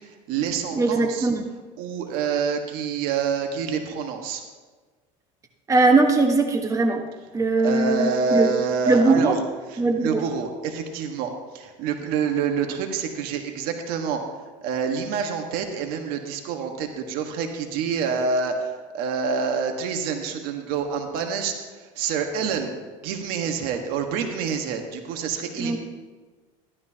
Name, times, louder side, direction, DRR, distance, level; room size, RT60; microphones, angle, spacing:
voice 1, 0.0-1.3 1.8-4.4 7.6-9.4 9.7-22.7 23.0-25.8, right 6 dB, 70° right, 4 dB, 1.4 m, -27 dB
voice 2, 0.7-1.4 5.7-7.0 7.3-8.5 8.9-9.4 9.8-10.2 25.6-25.8, right 3 dB, 20° right, 3 dB, 1.2 m, -20 dB
13.5 x 12.0 x 2.9 m, 1.4 s
supercardioid pair, 110°, 16 cm